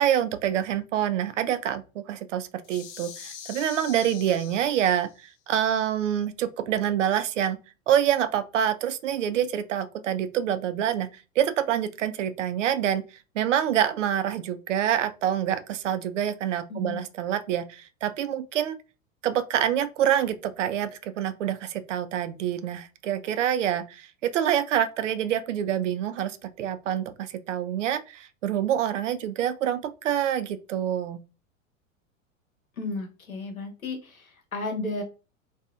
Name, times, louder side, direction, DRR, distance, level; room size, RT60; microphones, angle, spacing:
voice 1, 0.0-7.6 7.9-11.1 11.4-13.0 13.4-18.8 19.2-31.2, right 10 dB, 65° right, 0.5 m, -26 dB
sound 1, 2.6-5.2, left 8 dB, 25° left, 0.5 m, -43 dB
voice 2, 16.7-17.0 32.8-35.0, left 2 dB, 85° left, 0.9 m, -33 dB
2.8 x 2.3 x 2.4 m
figure-of-eight pair, 90°, 41 cm